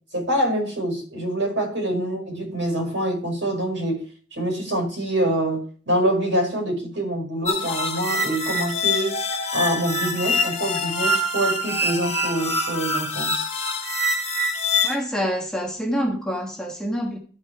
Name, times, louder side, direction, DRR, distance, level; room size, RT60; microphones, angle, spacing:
voice 1, 0.1-4.0 4.3-9.2 9.5-13.4, right 1 dB, 75° right, 5.4 m, -25 dB
sound 1, 7.5-14.9, left 2 dB, 35° left, 3.6 m, -25 dB
voice 2, 14.8-17.2, equal, 5° left, 1.4 m, -27 dB
14.0 x 6.5 x 3.5 m
head